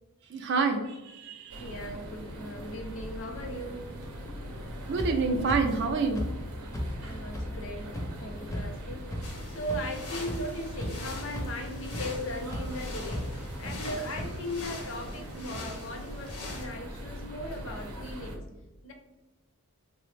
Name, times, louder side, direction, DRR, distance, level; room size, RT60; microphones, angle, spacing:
voice 1, 0.3-1.7 4.9-6.3, right 4 dB, 50° right, 4 dB, 0.3 m, -28 dB
sound 1, 1.5-18.4, equal, 90° right, 0.6 m, -41 dB
voice 2, 1.6-3.9 4.5-4.6 7.0-9.1 9.5-18.4 18.8-18.9, equal, 60° left, 3 dB, 0.6 m, -38 dB
sound 2, 5.0-5.1 5.5-5.6 6.1-6.3 6.7-6.8 7.3-7.4 7.9-8.0 8.5-8.6 9.1-9.2 9.7-9.8 10.3-10.4 10.8-11.0 11.3-11.4 11.9-12.0 12.5-12.6 13.1-13.2 13.6-13.7 14.2-14.3, equal, 15° left, 0.5 m, -33 dB
sound 3, 9.2-16.7, left 2 dB, 90° left, 0.8 m, -43 dB
3.2 x 2.0 x 3.1 m, 1.1 s
head